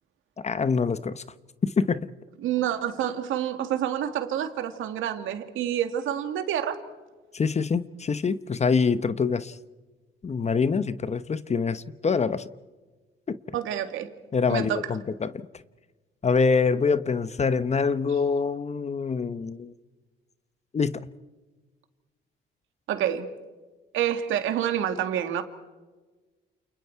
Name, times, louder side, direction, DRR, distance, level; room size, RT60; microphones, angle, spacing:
voice 1, 0.4-1.2 1.6-2.1 7.3-9.6 10.2-12.5 13.3-13.4 14.3-15.3 16.2-19.7 20.7-21.1, left 5 dB, 35° left, 0.9 m, -25 dB
voice 2, 2.4-6.8 13.5-14.1 14.5-14.8 22.9-23.3 23.9-25.4, right 10 dB, 85° right, 2.2 m, -28 dB
29.5 x 29.0 x 4.7 m
cardioid pair, 90°, 20 cm